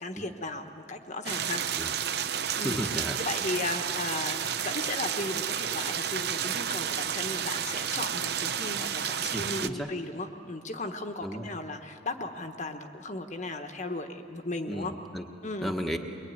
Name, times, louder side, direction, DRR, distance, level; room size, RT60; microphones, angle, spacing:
voice 1, 0.0-1.6 2.6-2.8 3.2-14.9 15.4-15.7, left 2 dB, 40° left, 6 dB, 1.2 m, -36 dB
sound 1, 1.3-9.7, right 8 dB, 60° right, 0.8 m, -31 dB
voice 2, 2.5-3.2 9.3-9.9 11.2-11.4 14.7-15.2 15.6-16.0, equal, ahead, 2 dB, 1.4 m, -34 dB
23.5 x 22.5 x 9.5 m, 2.5 s
head